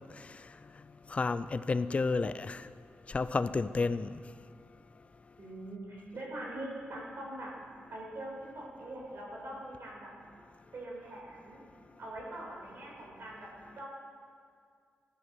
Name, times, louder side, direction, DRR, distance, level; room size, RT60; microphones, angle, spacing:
voice 1, 1.1-2.7 3.1-4.2, left 4 dB, 30° left, 0.5 m, -31 dB
voice 2, 5.4-7.5 7.9-10.1 10.7-11.6 12.0-13.5 13.7-13.9, right 1 dB, 60° right, 4.9 m, -43 dB
14.5 x 12.5 x 6.4 m
wide cardioid pair, 155°, 4 cm